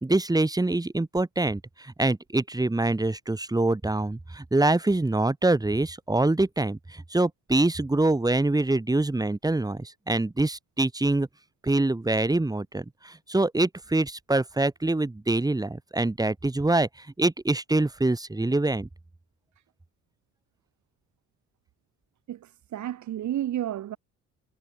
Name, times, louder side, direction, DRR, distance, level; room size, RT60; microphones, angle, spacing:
voice 1, 0.0-11.3 11.6-18.9, right 2 dB, 10° right, 2.1 m, -25 dB
voice 2, 22.3-24.0, right 12 dB, 70° right, 2.5 m, -31 dB
cardioid pair, 90°, 30 cm